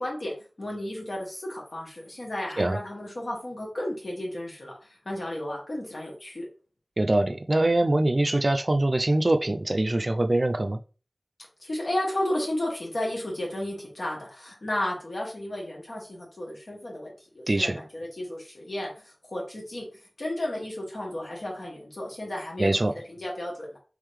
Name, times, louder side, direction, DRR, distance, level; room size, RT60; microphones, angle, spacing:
voice 1, 0.0-4.8 5.0-6.5 11.6-18.9 19.3-19.9 20.2-22.7 23.1-23.8, left 1 dB, 85° left, 1.6 m, -33 dB
voice 2, 7.0-10.8 17.5-17.8 22.6-22.9, right 1 dB, 50° right, 0.4 m, -23 dB
3.7 x 3.1 x 3.2 m
wide cardioid pair, 55°, 0 cm